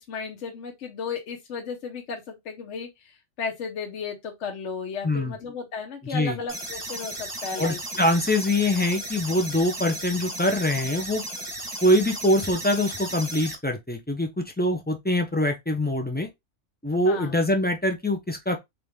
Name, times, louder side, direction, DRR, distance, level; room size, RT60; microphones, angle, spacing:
voice 1, 0.0-7.8 17.0-17.3, left 5 dB, 60° left, 1.1 m, -34 dB
voice 2, 5.0-5.4 6.1-6.4 7.6-11.2 11.8-16.3 16.8-18.6, left 1 dB, 15° left, 0.4 m, -24 dB
sound 1, 6.5-13.5, right 1 dB, 20° right, 1.1 m, -35 dB
4.0 x 3.1 x 3.5 m
omnidirectional pair, 1.4 m